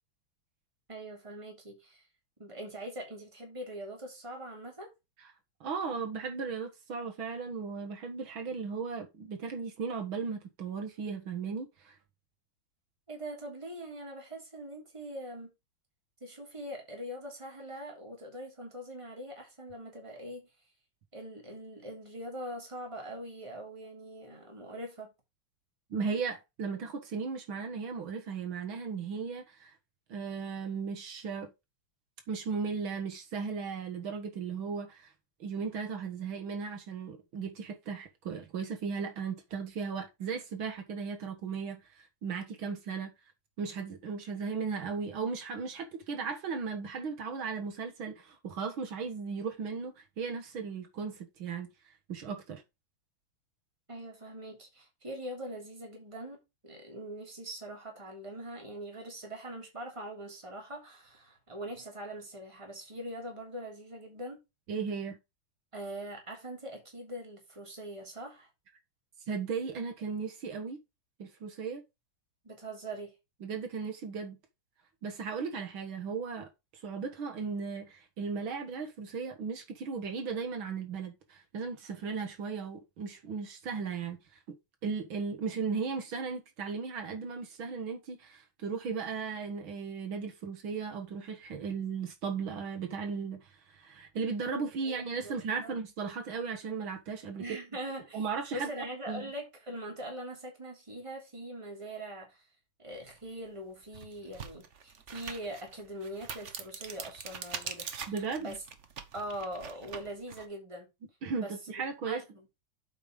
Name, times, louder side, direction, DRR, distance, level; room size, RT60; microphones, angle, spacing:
voice 1, 0.9-2.1 2.4-4.9 13.1-15.5 16.2-20.5 21.1-25.1 53.9-56.4 56.6-64.4 65.7-68.5 72.4-73.1 94.5-95.0 95.2-95.7 97.4-98.2 98.5-102.4 102.8-108.1 108.4-108.6 109.1-110.9 111.3-111.5 112.0-112.4, right 1 dB, 15° right, 3.3 m, -42 dB
voice 2, 5.6-12.0 25.9-29.7 30.1-31.5 32.3-35.1 35.4-43.1 43.6-51.7 52.1-52.6 64.7-65.2 69.3-70.8 71.2-71.8 73.4-74.4 75.0-84.2 84.5-84.6 84.8-97.6 98.1-98.7 99.1-99.3 108.1-108.6 111.2-112.2, right 5 dB, 75° right, 2.3 m, -36 dB
sound 1, 103.2-103.3 103.8-110.5, right 6 dB, 45° right, 1.1 m, -43 dB
8.2 x 5.3 x 5.2 m
omnidirectional pair, 2.2 m